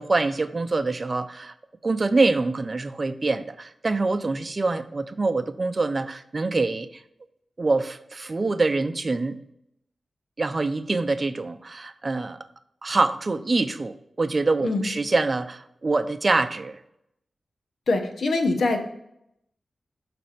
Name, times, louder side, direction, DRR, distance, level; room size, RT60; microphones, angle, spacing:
voice 1, 0.0-1.5 1.8-6.9 7.6-9.4 10.4-12.4 12.8-16.8, right 3 dB, 45° right, 10 dB, 0.5 m, -25 dB
voice 2, 17.9-18.9, left 2 dB, 85° left, 5 dB, 0.9 m, -24 dB
6.0 x 3.3 x 5.7 m, 0.78 s
cardioid pair, 50°, 0 cm